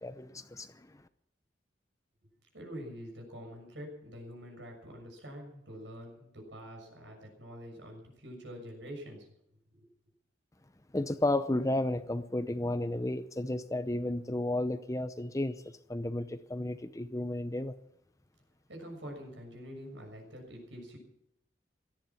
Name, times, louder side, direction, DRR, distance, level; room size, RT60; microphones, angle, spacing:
voice 1, 0.0-0.7 10.9-15.6 15.9-17.7, left 1 dB, 15° left, 11 dB, 0.7 m, -32 dB
voice 2, 2.5-9.3 9.7-9.9 18.7-21.0, equal, 75° right, 3 dB, 6.7 m, -46 dB
17.5 x 14.0 x 5.9 m, 0.77 s
head